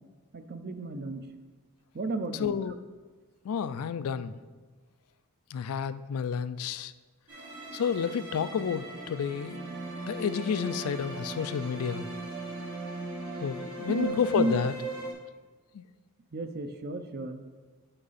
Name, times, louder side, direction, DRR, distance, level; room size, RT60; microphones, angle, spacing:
voice 1, 0.3-1.2 1.9-2.6 13.9-14.6 16.3-17.4, right 2 dB, 45° right, 9 dB, 0.6 m, -33 dB
voice 2, 2.3-2.7 3.4-4.4 5.5-6.9 7.7-9.6 10.0-12.0 13.4-14.7 15.7-15.8, left 7 dB, 80° left, 14 dB, 0.4 m, -30 dB
sound 1, 7.3-15.1, right 2 dB, 90° right, 2.6 m, -38 dB
7.8 x 5.6 x 4.1 m, 1.4 s
head